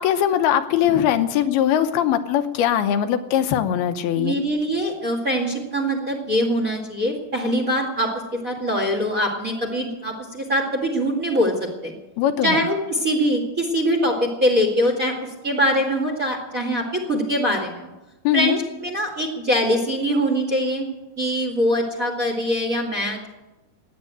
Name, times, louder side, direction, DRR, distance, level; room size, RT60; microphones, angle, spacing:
voice 1, 0.0-4.4 12.2-12.7 18.2-18.6, left 10 dB, 80° left, 8 dB, 2.7 m, -21 dB
voice 2, 4.2-8.1 8.4-11.9 12.4-17.9 18.3-20.9 21.2-23.3, equal, 30° right, 2 dB, 1.8 m, -23 dB
15.5 x 10.0 x 8.9 m, 1.0 s
omnidirectional pair, 4.5 m